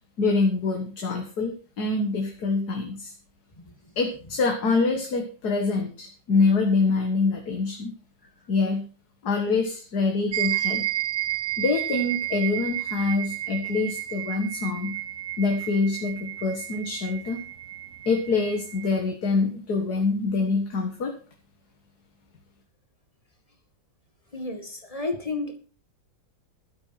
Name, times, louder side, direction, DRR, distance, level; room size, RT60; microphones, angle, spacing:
voice 1, 0.2-3.1 4.0-7.9 8.5-8.8 9.2-10.8 11.6-14.9 15.4-17.4 18.1-21.1, left 3 dB, 55° left, 4 dB, 2.1 m, -25 dB
sound 1, 10.3-19.0, right 14 dB, 65° right, 0.7 m, -32 dB
voice 2, 24.3-25.6, left 3 dB, 20° left, 6 dB, 2.0 m, -32 dB
12.5 x 9.3 x 5.9 m, 0.39 s
omnidirectional pair, 2.1 m